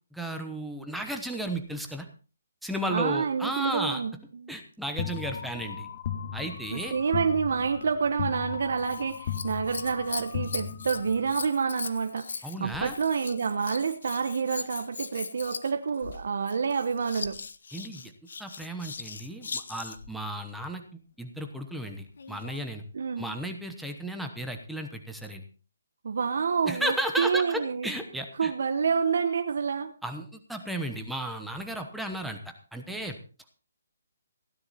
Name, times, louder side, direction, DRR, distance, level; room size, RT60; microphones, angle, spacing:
voice 1, 0.1-2.1 2.6-4.0 4.5-5.9 6.3-6.9 12.4-13.0 17.7-18.1 18.4-20.8 21.2-22.8 23.2-25.4 26.6-28.5 30.0-33.2, right 1 dB, ahead, 4 dB, 1.1 m, -34 dB
voice 2, 2.9-4.1 4.4-4.5 6.7-17.4 22.9-23.3 26.0-27.9 28.4-29.9, right 5 dB, 60° right, 6 dB, 1.0 m, -28 dB
sound 1, 5.0-11.4, left 8 dB, 35° left, 1.1 m, -37 dB
Scissors, 8.8-20.1 22.1-22.7 23.4-23.5, left 5 dB, 65° left, 1.4 m, -40 dB
16.5 x 10.5 x 4.2 m, 0.37 s
hypercardioid pair, 165°, 0 cm